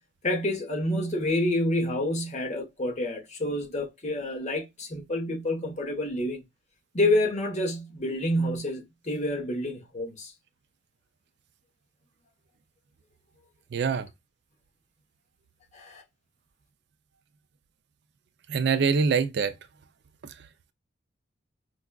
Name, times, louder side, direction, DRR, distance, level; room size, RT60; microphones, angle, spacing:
voice 1, 0.2-6.4 6.9-10.3 15.7-16.0, left 1 dB, 35° left, 1.0 m, -28 dB
voice 2, 13.7-14.1 18.5-19.5 20.2-20.3, right 5 dB, 60° right, 0.4 m, -24 dB
4.6 x 2.3 x 2.2 m
head